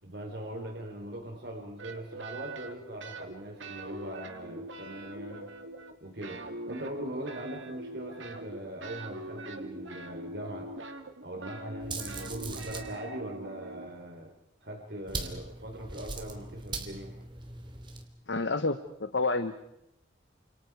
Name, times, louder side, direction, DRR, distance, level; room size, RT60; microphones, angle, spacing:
voice 1, 0.0-5.5 6.0-10.7 11.2-14.3 14.6-17.2, right 1 dB, 60° right, 2 dB, 3.7 m, -41 dB
sound 1, 1.8-3.3 3.6-6.0 6.2-13.9, right 2 dB, 75° right, 2.4 m, -43 dB
sound 2, 11.8-12.9 15.1-18.1, right 3 dB, 25° right, 2.9 m, -40 dB
voice 2, 18.3-19.6, left 3 dB, 70° left, 9 dB, 1.2 m, -29 dB
29.5 x 27.5 x 4.8 m, 0.83 s
head